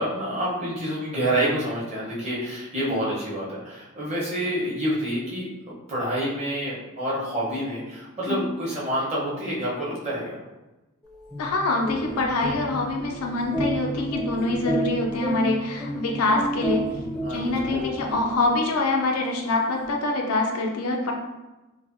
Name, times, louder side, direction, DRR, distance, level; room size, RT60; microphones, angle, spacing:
voice 1, 0.0-10.4 17.2-17.8, right 1 dB, 30° right, -7 dB, 0.9 m, -28 dB
sound 1, 11.1-18.8, equal, 5° left, 0.5 m, -31 dB
voice 2, 11.4-16.9 17.3-21.1, left 2 dB, 85° left, 1 dB, 0.5 m, -25 dB
3.1 x 2.1 x 2.6 m, 1.1 s
head